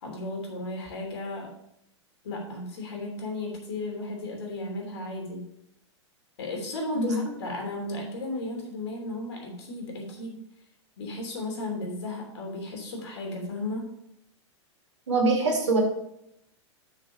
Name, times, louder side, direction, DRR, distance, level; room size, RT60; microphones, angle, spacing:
voice 1, 0.0-1.5 2.2-5.4 6.4-10.4 11.0-13.9, left 2 dB, 60° left, 1 dB, 3.1 m, -34 dB
voice 2, 15.1-15.8, right 3 dB, 70° right, 1 dB, 2.7 m, -23 dB
7.7 x 6.3 x 5.1 m, 0.78 s
figure-of-eight pair, 95°, 15 cm